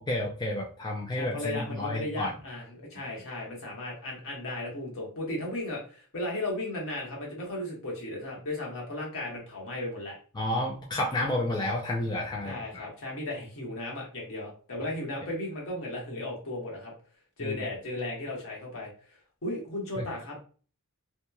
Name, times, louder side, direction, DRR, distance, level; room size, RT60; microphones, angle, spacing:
voice 1, 0.1-2.3 10.4-12.8 17.4-17.6 20.0-20.1, left 1 dB, 20° left, -2 dB, 0.3 m, -30 dB
voice 2, 1.1-10.2 12.4-16.9 17.4-18.9 19.4-20.4, left 1 dB, 65° left, -2 dB, 1.1 m, -35 dB
2.9 x 2.1 x 2.3 m, 0.40 s
head